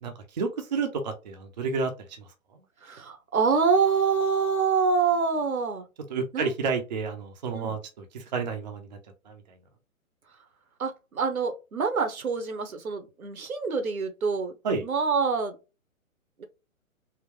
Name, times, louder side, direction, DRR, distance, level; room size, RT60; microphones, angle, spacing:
voice 1, 0.0-2.3 6.1-9.0 9.3-9.4 14.6-14.8, right 4 dB, 35° right, 0.5 m, -30 dB
voice 2, 2.8-5.8 6.3-6.5 7.5-7.8 10.8-14.5 14.8-15.5 16.4-16.5, right 5 dB, 80° right, 0.9 m, -26 dB
3.7 x 2.1 x 2.9 m
figure-of-eight pair, 130°, 42 cm